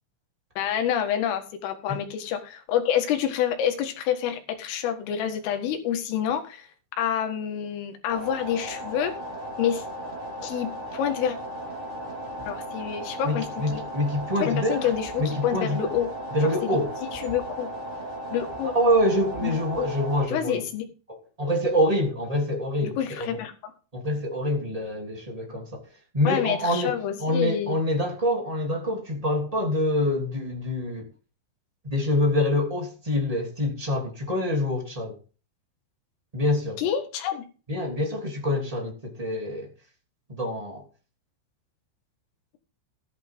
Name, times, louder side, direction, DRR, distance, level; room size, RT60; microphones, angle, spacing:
voice 1, 0.6-6.7 7.0-9.1 9.6-9.9 10.4-11.4 12.5-13.8 14.4-16.1 16.4-16.8 17.1-17.7 18.3-18.8 19.4-19.9 20.3-20.9 22.8-23.7 26.3-27.7 36.8-37.5, left 9 dB, 75° left, 4.3 m, -28 dB
sound 1, 8.1-20.3, right 1 dB, 30° right, 0.9 m, -36 dB
voice 2, 13.2-14.9 15.2-15.9 16.3-16.9 18.7-20.6 21.1-23.3 23.9-25.8 26.1-31.1 31.8-35.2 36.3-36.8 37.7-39.7 40.3-40.8, left 1 dB, 15° right, 1.4 m, -26 dB
14.5 x 10.5 x 3.7 m
omnidirectional pair, 5.9 m